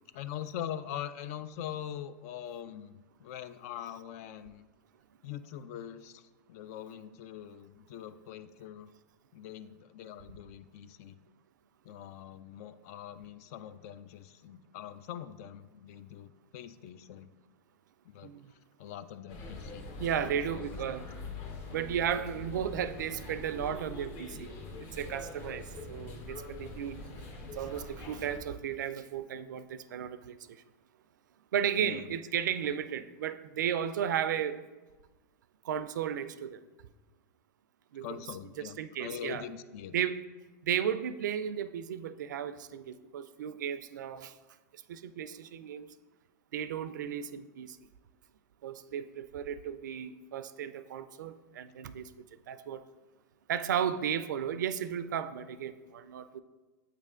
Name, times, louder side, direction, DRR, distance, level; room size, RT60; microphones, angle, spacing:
voice 1, 0.1-4.6 5.2-8.9 9.3-11.2 11.8-17.3 18.0-19.9 20.2-21.1 31.8-32.2 38.0-39.9, left 10 dB, 55° left, 13 dB, 0.4 m, -43 dB
sound 1, 19.3-28.4, left 3 dB, 40° left, 1.1 m, -44 dB
voice 2, 20.0-21.0 21.7-24.5 24.9-27.0 27.5-30.4 31.5-34.6 35.6-36.6 37.9-38.2 38.6-39.4 39.9-40.2 40.6-44.3 44.9-45.9 46.5-47.8 48.6-52.1 52.5-52.8 53.5-56.4, right 9 dB, 85° right, 14 dB, 0.3 m, -34 dB
8.1 x 3.2 x 3.6 m, 1.2 s
hypercardioid pair, 120°, 10 cm